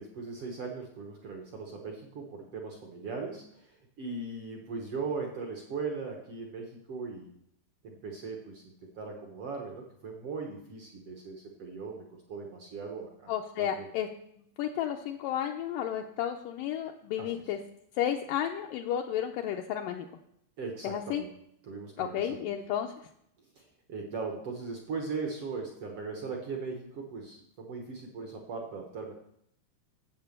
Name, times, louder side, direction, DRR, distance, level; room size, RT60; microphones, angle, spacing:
voice 1, 0.0-7.3 7.8-13.3 13.6-13.9 17.2-17.5 20.6-21.3 21.6-22.5 23.5-29.1, right 4 dB, 70° right, 1 dB, 1.4 m, -39 dB
voice 2, 13.3-14.1 14.6-17.6 18.0-20.1 20.8-21.2 22.0-22.9, left 10 dB, 85° left, 3 dB, 2.0 m, -32 dB
8.8 x 8.1 x 6.6 m, 0.74 s
omnidirectional pair, 4.5 m